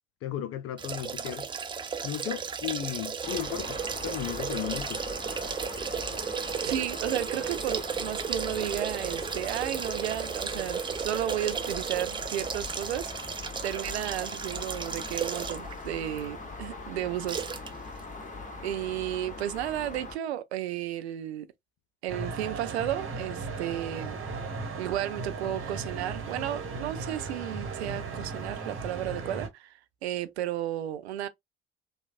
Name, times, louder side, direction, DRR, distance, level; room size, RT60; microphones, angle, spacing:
voice 1, 0.2-1.5 2.0-5.0, left 11 dB, 45° left, 0.6 m, -35 dB
sound 1, 0.8-15.7 16.2-16.3 17.3-17.7 18.0-18.1, right 6 dB, 15° right, 0.3 m, -34 dB
sound 2, 3.2-20.2, left 3 dB, 25° left, 1.3 m, -41 dB
voice 2, 6.6-13.1 13.6-17.4 18.6-21.5 22.0-24.2 24.8-31.3, right 12 dB, 80° right, 0.5 m, -33 dB
sound 3, 22.1-29.5, right 4 dB, 40° right, 1.2 m, -36 dB
3.1 x 2.3 x 2.5 m
figure-of-eight pair, 60°, 32 cm